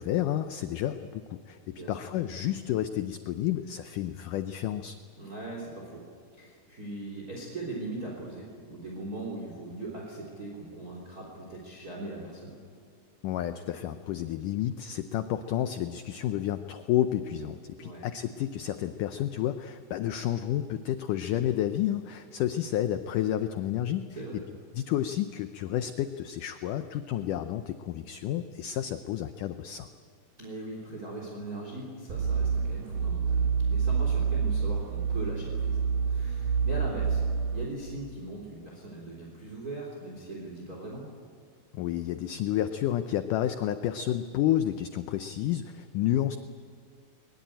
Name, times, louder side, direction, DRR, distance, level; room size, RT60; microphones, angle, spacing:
voice 1, 0.0-5.0 13.2-24.1 24.7-29.9 41.7-46.4, left 12 dB, 80° left, 9 dB, 1.9 m, -30 dB
voice 2, 1.7-2.0 5.2-6.0 6.4-12.6 17.8-18.0 24.1-24.4 30.4-37.2 37.5-41.1, right 2 dB, 25° right, -2 dB, 3.7 m, -40 dB
sound 1, 32.1-37.7, right 6 dB, 65° right, 3.5 m, -27 dB
22.0 x 21.5 x 8.9 m, 2.1 s
omnidirectional pair, 4.5 m